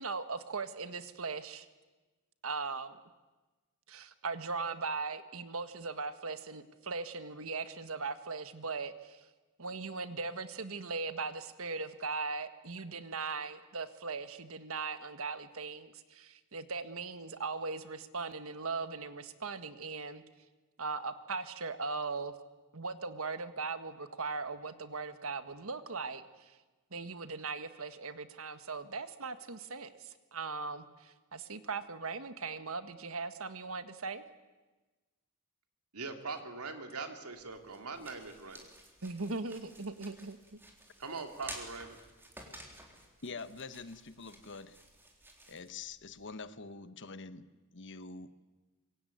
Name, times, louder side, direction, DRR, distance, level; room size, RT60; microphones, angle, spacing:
voice 1, 0.0-1.7 2.4-2.9 3.9-9.2 9.6-20.2 20.8-22.3 22.7-26.6 26.9-34.2 39.0-40.4, right 4 dB, 65° right, 10 dB, 1.6 m, -39 dB
voice 2, 35.9-38.7 41.0-42.0, right 4 dB, 90° right, 5 dB, 3.0 m, -42 dB
sound 1, 37.3-46.3, right 1 dB, 10° right, 3.8 m, -52 dB
voice 3, 43.2-44.8 45.5-48.4, left 4 dB, 55° left, 13 dB, 1.2 m, -45 dB
25.5 x 23.0 x 9.4 m, 1.2 s
head